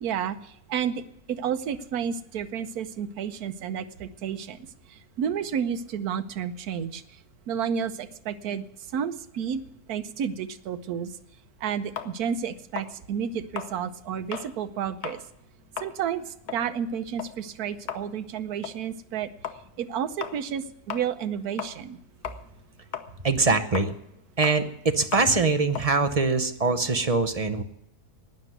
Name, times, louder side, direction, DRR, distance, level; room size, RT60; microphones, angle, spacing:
voice 1, 0.0-1.0 1.3-4.6 4.9-7.0 7.5-8.6 8.9-9.6 9.9-11.1 11.6-15.2 15.8-19.3 19.8-22.0, right 8 dB, 75° right, 10 dB, 1.3 m, -31 dB
sound 1, 12.0-14.6 14.9-15.3 15.6-22.0 22.2-27.0, left 9 dB, 80° left, 1.5 m, -38 dB
voice 2, 23.2-24.0 24.4-27.6, right 3 dB, 35° right, 8 dB, 0.7 m, -23 dB
12.0 x 9.8 x 9.2 m, 0.77 s
omnidirectional pair, 1.6 m